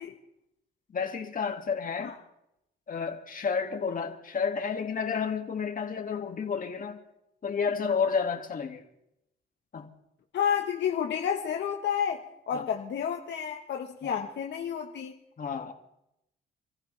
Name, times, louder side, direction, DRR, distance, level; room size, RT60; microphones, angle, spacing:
voice 1, 0.9-2.2 2.9-7.0 7.4-8.9 9.7-9.9 12.5-12.7 14.0-14.2 15.4-15.7, left 6 dB, 45° left, 2.4 m, -31 dB
voice 2, 10.3-15.1, left 8 dB, 65° left, 1.4 m, -30 dB
28.0 x 14.5 x 3.5 m
cardioid pair, 90°, 20 cm